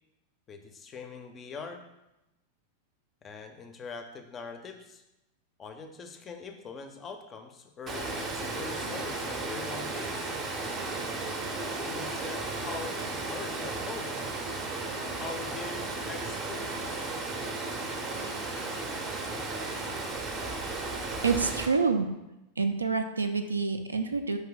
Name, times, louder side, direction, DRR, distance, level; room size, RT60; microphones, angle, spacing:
voice 1, 0.5-1.8 3.2-5.0 5.6-10.3 11.6-14.1 15.1-17.0, left 5 dB, 25° left, 6 dB, 0.5 m, -43 dB
Water, 7.9-21.7, right 3 dB, 25° right, 0.6 m, -34 dB
voice 2, 21.2-22.1 22.6-24.4, right 4 dB, 75° right, 7 dB, 0.3 m, -27 dB
4.7 x 2.7 x 3.8 m, 0.93 s
figure-of-eight pair, 90°, 0 cm